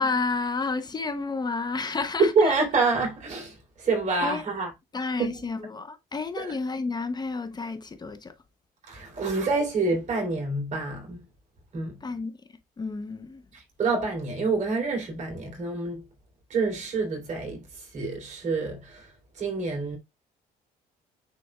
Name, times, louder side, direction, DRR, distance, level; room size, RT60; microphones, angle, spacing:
voice 1, 0.0-2.5 4.2-4.4 4.9-8.3 12.0-12.4 12.8-13.4, left 4 dB, 25° left, 0.8 m, -30 dB
voice 2, 2.2-4.7 5.2-5.5 6.4-6.5 8.9-11.2 11.7-12.0 13.5-16.0 16.5-20.0, right 3 dB, 45° right, 3.8 m, -27 dB
9.5 x 4.2 x 2.4 m
cardioid pair, 110°, 17 cm